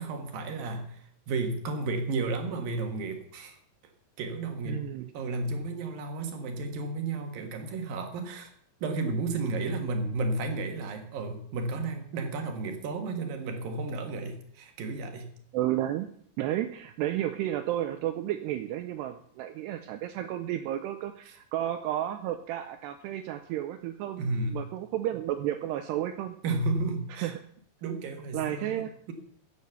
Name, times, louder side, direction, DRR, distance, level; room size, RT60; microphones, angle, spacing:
voice 1, 0.0-3.6 4.2-4.9 5.1-8.5 8.8-15.3 24.2-24.7 26.4-27.3 27.8-29.1, right 3 dB, 60° right, 5 dB, 2.8 m, -32 dB
voice 2, 4.7-5.1 15.5-16.1 16.4-24.2 24.5-26.4 27.1-27.3 28.3-28.9, right 12 dB, 80° right, 9 dB, 2.5 m, -32 dB
14.5 x 8.4 x 6.9 m, 0.63 s
omnidirectional pair, 5.4 m